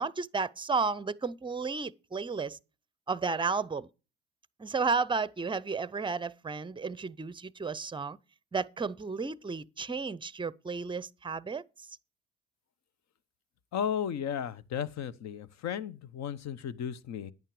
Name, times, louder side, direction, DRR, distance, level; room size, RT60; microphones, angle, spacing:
voice 1, 0.0-2.6 3.1-3.9 4.6-8.2 8.5-11.6, right 4 dB, 15° right, 0.6 m, -32 dB
voice 2, 13.7-17.3, left 8 dB, 60° left, 1.0 m, -34 dB
10.5 x 8.9 x 4.8 m
supercardioid pair, 70°, 31 cm